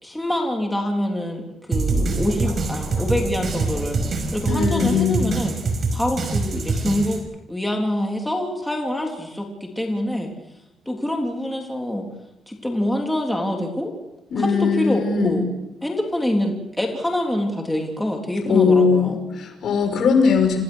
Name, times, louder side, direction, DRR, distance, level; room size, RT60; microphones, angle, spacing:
voice 1, 0.0-4.0 4.3-5.5 5.9-7.2 7.5-10.3 10.9-12.1 12.5-13.9 14.4-15.4 15.8-19.2, left 1 dB, 5° left, 0 dB, 3.6 m, -25 dB
sound 1, 1.7-7.2, right 3 dB, 40° right, 5.4 m, -24 dB
voice 2, 4.4-5.3 14.3-15.4 18.4-20.6, left 5 dB, 60° left, 4 dB, 5.9 m, -19 dB
28.0 x 17.0 x 6.4 m, 0.92 s
cardioid pair, 110°, 0 cm